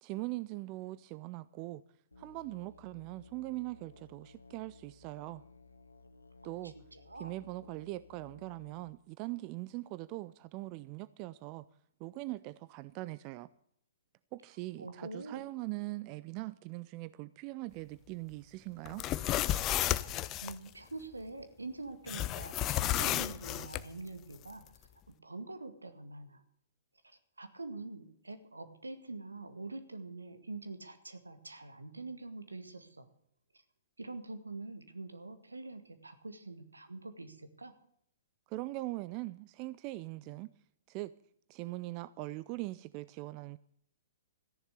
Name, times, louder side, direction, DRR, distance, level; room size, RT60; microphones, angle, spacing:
voice 1, 0.0-1.8 2.2-5.4 6.4-6.8 7.2-11.7 12.0-13.5 14.3-19.1 38.5-40.5 40.9-41.1 41.5-43.6, right 19 dB, 35° right, 0.5 m, -41 dB
Musical instrument, 2.1-8.8, left 3 dB, 80° left, 1.6 m, -58 dB
voice 2, 6.6-7.3 14.8-15.5 20.4-24.6 25.2-26.4 27.0-33.1 34.0-37.7, right 3 dB, 80° right, 1.9 m, -45 dB
sound 1, 18.9-20.5 22.1-23.8, left 13 dB, 25° left, 0.6 m, -32 dB
14.0 x 10.5 x 6.7 m
figure-of-eight pair, 115°, 0 cm